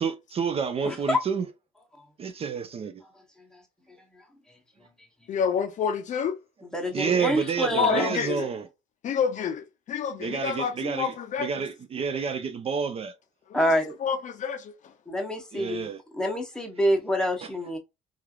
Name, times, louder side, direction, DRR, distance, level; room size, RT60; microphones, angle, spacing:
voice 1, 0.0-1.4 2.2-2.9 6.9-8.6 10.2-11.1 11.4-13.1 15.5-16.0, right 6 dB, 35° right, 0.4 m, -29 dB
voice 2, 0.8-1.2 2.0-2.1 6.7-8.2 13.5-13.9 15.1-17.8, equal, 5° left, 0.8 m, -27 dB
voice 3, 5.3-6.4 7.8-8.5 9.0-11.5 13.5-13.6 14.0-14.7, left 7 dB, 45° left, 0.5 m, -28 dB
3.1 x 2.4 x 2.2 m
cardioid pair, 110°, 17 cm